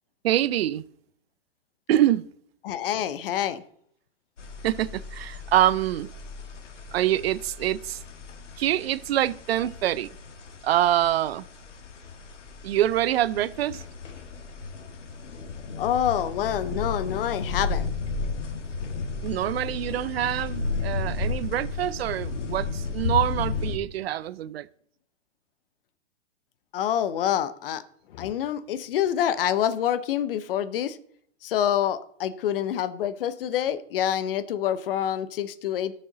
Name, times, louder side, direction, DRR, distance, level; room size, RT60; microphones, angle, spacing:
voice 1, 0.2-0.8 1.9-2.2 4.6-6.1 6.9-8.0 8.6-10.1 10.6-11.4 12.6-13.8 19.2-24.7, right 12 dB, 60° right, 0.5 m, -25 dB
voice 2, 2.6-3.6 15.8-17.9 26.7-27.8 28.1-31.0 31.4-35.9, left 10 dB, 50° left, 0.8 m, -27 dB
sound 1, 4.4-23.8, left 4 dB, 85° left, 1.8 m, -34 dB
13.5 x 6.5 x 3.9 m
hypercardioid pair, 140°, 35 cm